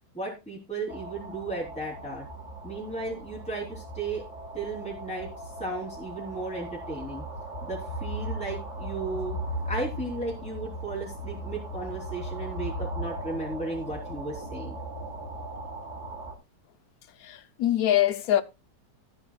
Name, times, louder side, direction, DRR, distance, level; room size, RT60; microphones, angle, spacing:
voice 1, 0.1-2.3 2.6-4.2 4.5-5.3 5.6-7.2 7.6-9.4 9.6-14.8, right 2 dB, 5° left, 3.2 m, -35 dB
sound 1, 0.9-16.3, right 1 dB, 45° right, 3.0 m, -37 dB
voice 2, 17.2-18.4, left 12 dB, 65° left, 1.1 m, -24 dB
14.5 x 9.1 x 2.4 m
omnidirectional pair, 1.8 m